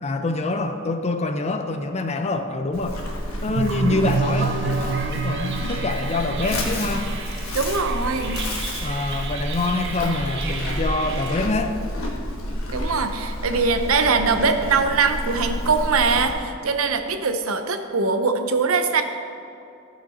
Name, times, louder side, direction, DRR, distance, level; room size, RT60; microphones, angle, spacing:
voice 1, 0.0-3.0 3.4-7.1 8.8-11.8, left 2 dB, 30° left, 7 dB, 0.6 m, -25 dB
Livestock farm animals working animals, 2.7-16.3, equal, 85° left, 1.4 m, -30 dB
sound 1, 3.5-11.4, right 4 dB, 55° right, 0.9 m, -29 dB
voice 2, 7.5-8.4 12.7-19.0, right 4 dB, 85° right, 7 dB, 0.8 m, -22 dB
13.5 x 6.0 x 4.3 m, 2.7 s
head